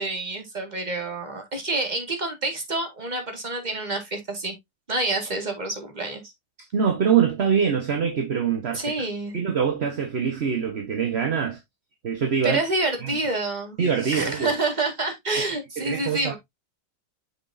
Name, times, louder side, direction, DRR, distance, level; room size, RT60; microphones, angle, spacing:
voice 1, 0.0-4.5 4.9-6.2 8.7-9.4 12.4-16.3, right 2 dB, 25° right, 1.9 m, -28 dB
voice 2, 6.7-8.8 9.3-11.6 12.0-12.6 13.0-13.2 13.8-14.5 15.8-16.3, right 7 dB, 40° right, 1.1 m, -24 dB
7.3 x 6.1 x 2.6 m
omnidirectional pair, 2.1 m